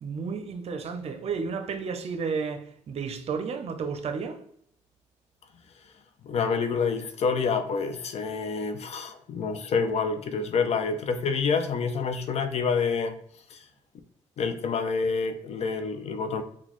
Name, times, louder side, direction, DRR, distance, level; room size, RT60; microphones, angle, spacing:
voice 1, 0.0-4.4, right 5 dB, 55° right, 0.6 m, -32 dB
voice 2, 6.3-13.2 13.5-13.6 14.4-16.4, left 5 dB, 55° left, 0.5 m, -27 dB
3.9 x 2.2 x 3.0 m
cardioid pair, 70°, 13 cm